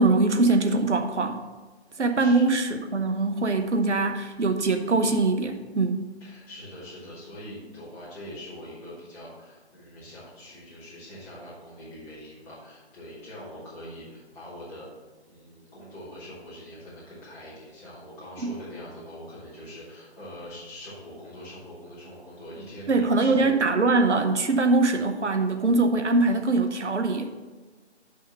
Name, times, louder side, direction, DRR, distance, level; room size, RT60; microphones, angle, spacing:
voice 1, 0.0-1.4 2.0-6.1 22.9-27.4, right 3 dB, 85° right, 6 dB, 0.8 m, -22 dB
voice 2, 1.9-2.4 6.2-14.9 15.2-23.5, equal, 10° left, -11 dB, 2.2 m, -43 dB
6.3 x 5.5 x 5.8 m, 1.3 s
figure-of-eight pair, 155°, 34 cm